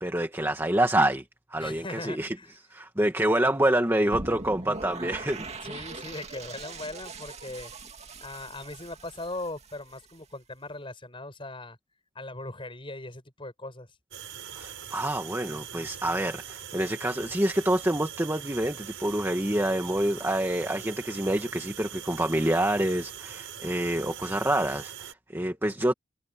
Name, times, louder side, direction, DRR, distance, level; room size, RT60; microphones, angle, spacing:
voice 1, 0.0-1.2 1.5-2.4 2.7-5.5 14.5-25.9, right 1 dB, 10° right, 2.1 m, -27 dB
voice 2, 1.6-2.5 5.6-7.7 8.2-11.8 12.1-13.9, left 2 dB, 25° left, 6.6 m, -39 dB
sound 1, 4.1-10.2, right 3 dB, 35° right, 2.3 m, -41 dB
sound 2, 14.1-25.1, right 9 dB, 75° right, 4.6 m, -42 dB
head